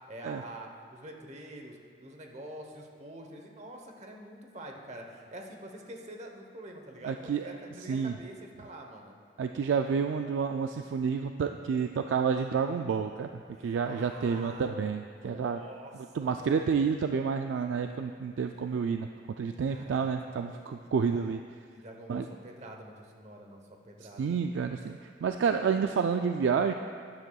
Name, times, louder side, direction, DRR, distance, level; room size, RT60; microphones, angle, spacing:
voice 1, 0.0-9.2 13.5-14.8 15.1-16.8 19.6-20.3 20.8-20.9 21.7-24.4, right 1 dB, 40° right, 2 dB, 0.9 m, -46 dB
voice 2, 7.0-7.5 7.9-8.2 9.4-13.3 13.6-15.6 16.1-19.1 19.4-21.4 22.1-22.2 24.2-26.7, right 6 dB, 85° right, 6 dB, 0.3 m, -29 dB
12.5 x 10.5 x 2.3 m, 2.2 s
head